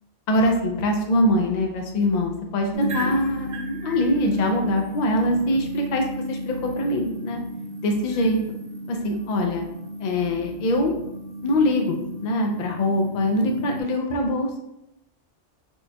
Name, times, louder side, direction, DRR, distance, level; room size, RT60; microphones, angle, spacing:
voice 1, 0.3-7.4 7.8-8.4 8.9-9.6 10.0-10.9 11.4-14.6, left 1 dB, 60° left, 2 dB, 0.4 m, -23 dB
sound 1, 2.7-13.8, right 1 dB, 45° right, 0.7 m, -34 dB
4.4 x 2.7 x 2.2 m, 0.83 s
omnidirectional pair, 1.2 m